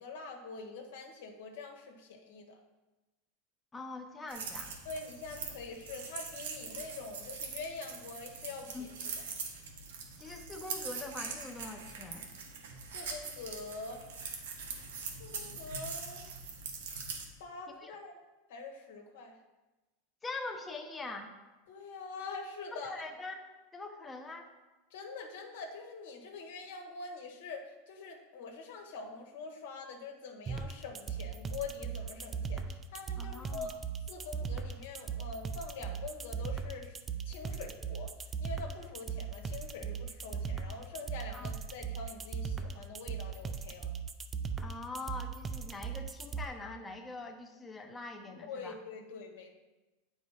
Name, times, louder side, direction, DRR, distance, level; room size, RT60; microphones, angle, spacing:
voice 1, 0.0-2.6 4.8-8.9 12.9-14.1 15.2-16.3 17.4-18.1 18.5-19.4 21.7-22.9 24.9-33.8 34.1-37.0 37.2-43.9 48.4-49.5, left 4 dB, 80° left, 1 dB, 1.4 m, -44 dB
voice 2, 3.7-4.7 8.7-8.9 10.2-12.3 17.8-17.9 20.2-21.3 22.7-23.4 23.7-24.5 33.2-33.7 41.3-41.5 44.6-48.8, left 3 dB, 15° left, 3 dB, 0.7 m, -43 dB
sound 1, 4.3-17.3, right 5 dB, 90° right, 1.3 m, -43 dB
sound 2, 30.5-46.5, right 6 dB, 25° right, 0.4 m, -38 dB
8.4 x 4.9 x 4.1 m, 1.1 s
supercardioid pair, 130°, 0 cm